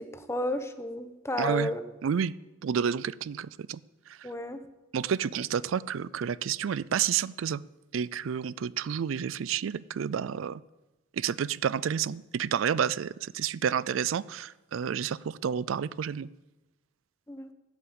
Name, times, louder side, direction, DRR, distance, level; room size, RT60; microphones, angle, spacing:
voice 1, 0.0-1.8 4.2-4.6 17.3-17.5, left 1 dB, 15° left, 9 dB, 0.9 m, -32 dB
voice 2, 1.4-1.7 2.0-2.3 2.6-3.8 4.1-4.3 4.9-7.6 7.9-10.6 11.1-16.3, right 8 dB, 80° right, 20 dB, 0.4 m, -30 dB
13.0 x 8.1 x 8.7 m, 1.1 s
head